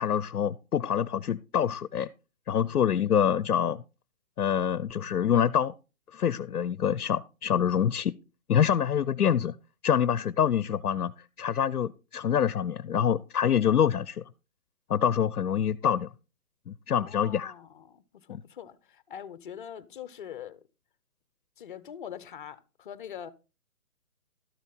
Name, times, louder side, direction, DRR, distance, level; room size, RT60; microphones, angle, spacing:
voice 1, 0.0-2.1 2.5-3.8 4.4-5.7 6.1-8.1 8.5-9.5 9.8-11.1 11.4-14.2 14.9-16.1 16.7-17.5 18.3-18.4, left 8 dB, 85° left, 0.6 m, -26 dB
voice 2, 16.9-20.6 21.6-23.3, left 9 dB, 35° left, 0.7 m, -43 dB
12.5 x 7.1 x 4.1 m
hypercardioid pair, 145°, 44 cm